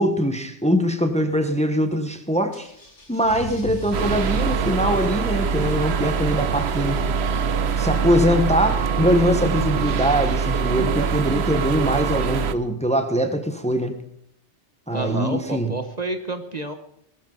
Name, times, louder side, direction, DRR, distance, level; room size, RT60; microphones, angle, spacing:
voice 1, 0.0-2.7 3.1-7.0 7.8-14.0 14.9-15.7, equal, 5° left, 7 dB, 1.3 m, -22 dB
Car / Engine starting / Accelerating revving vroom, 2.5-9.0, left 1 dB, 75° left, 3.9 m, -39 dB
sound 1, 3.9-12.5, right 6 dB, 65° right, 1.0 m, -23 dB
voice 2, 14.9-16.7, right 2 dB, 35° right, 7 dB, 1.3 m, -29 dB
20.5 x 13.5 x 4.0 m, 0.72 s
omnidirectional pair, 1.2 m